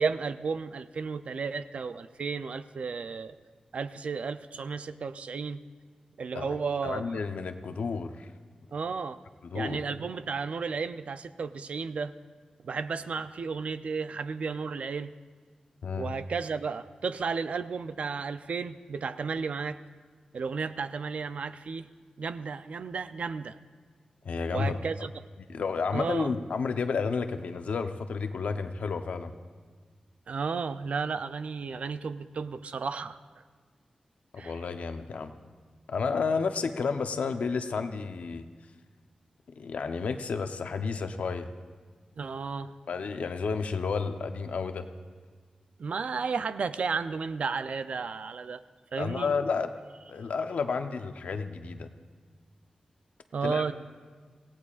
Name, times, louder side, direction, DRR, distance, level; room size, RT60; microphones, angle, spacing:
voice 1, 0.0-3.4 3.7-5.6 6.2-7.0 8.7-9.2 9.5-12.1 12.6-15.1 16.0-19.8 20.3-21.9 22.2-23.6 24.5-25.1 25.9-26.3 30.3-33.2 34.4-34.6 42.2-42.7 45.8-48.6 48.9-49.3 53.3-53.7, right 5 dB, 70° right, 11 dB, 0.5 m, -33 dB
voice 2, 6.3-8.3 9.4-9.8 15.8-16.1 24.2-24.8 25.5-29.3 34.3-35.3 35.9-38.4 39.6-41.5 42.9-44.9 49.0-49.7 50.1-51.9 53.4-53.6, left 5 dB, 90° left, 7 dB, 0.8 m, -31 dB
25.5 x 17.0 x 2.5 m, 1.5 s
wide cardioid pair, 140°, 2 cm